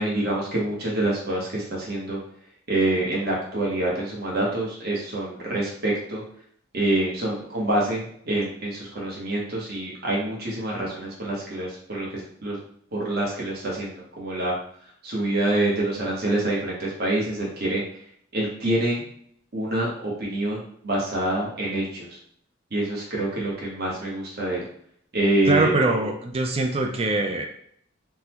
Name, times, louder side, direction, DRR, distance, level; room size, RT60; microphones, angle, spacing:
voice 1, 0.0-2.2 2.7-6.2 6.7-12.6 12.9-14.6 15.0-17.8 18.3-19.0 19.5-22.1 22.7-24.6 25.1-25.7, right 1 dB, 50° right, -4 dB, 0.9 m, -26 dB
voice 2, 25.5-27.4, right 3 dB, 30° right, 2 dB, 0.3 m, -23 dB
3.7 x 2.1 x 2.9 m, 0.65 s
head